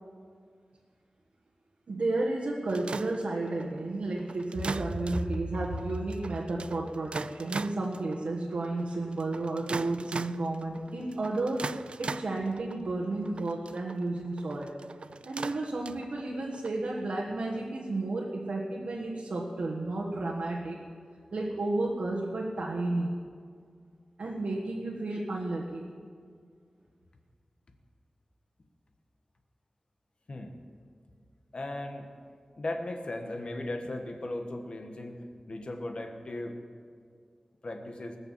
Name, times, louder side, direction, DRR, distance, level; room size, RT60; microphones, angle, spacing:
voice 1, 1.9-11.7 12.0-14.7 15.2-20.8 21.3-23.1 24.2-25.9, right 2 dB, 85° right, -3 dB, 1.4 m, -32 dB
sound 1, 2.7-16.7, right 4 dB, 60° right, 0.3 m, -41 dB
voice 2, 31.5-32.1 32.6-36.6 37.6-38.2, left 1 dB, 55° left, 4 dB, 1.5 m, -37 dB
19.5 x 7.0 x 7.4 m, 2.1 s
wide cardioid pair, 85°, 2 cm